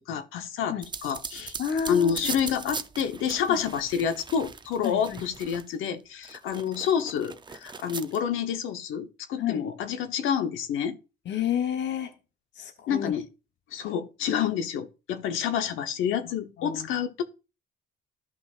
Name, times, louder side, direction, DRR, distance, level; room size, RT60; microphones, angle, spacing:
voice 1, 0.1-0.8 1.0-1.5 1.9-11.0 12.9-13.2 13.7-17.2, left 8 dB, 90° left, 1.0 m, -28 dB
sound 1, 0.8-5.9 6.2-8.2, right 4 dB, 25° right, 0.5 m, -40 dB
voice 2, 1.6-2.4 3.5-3.6 4.8-5.3 9.4-9.7 11.2-12.1 12.5-13.1 16.6-16.9, left 8 dB, 65° left, 1.1 m, -30 dB
13.5 x 5.7 x 2.4 m
cardioid pair, 90°, 20 cm